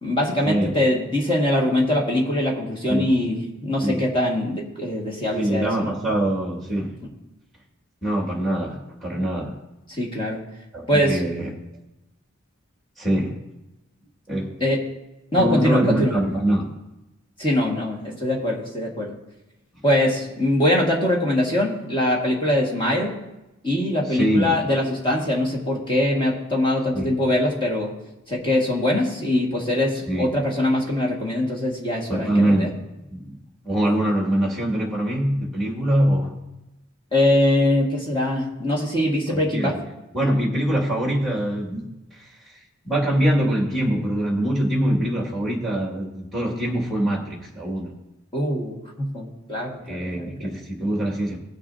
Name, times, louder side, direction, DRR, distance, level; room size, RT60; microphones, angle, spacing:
voice 1, 0.0-6.0 9.9-10.4 10.9-11.2 14.6-14.8 15.3-16.1 17.4-19.1 19.8-23.1 23.6-27.9 28.3-32.7 37.1-39.8 48.3-50.3, left 1 dB, 25° left, -2 dB, 1.8 m, -22 dB
voice 2, 5.4-7.0 8.0-9.6 10.7-11.6 13.0-13.4 14.3-14.6 15.4-16.7 24.1-24.6 26.9-27.1 30.1-30.4 32.1-32.8 33.1-33.4 33.6-36.4 39.3-39.8 40.1-42.5 42.8-47.9 49.8-51.4, right 1 dB, ahead, -1 dB, 2.2 m, -24 dB
18.0 x 6.9 x 2.8 m, 0.95 s
head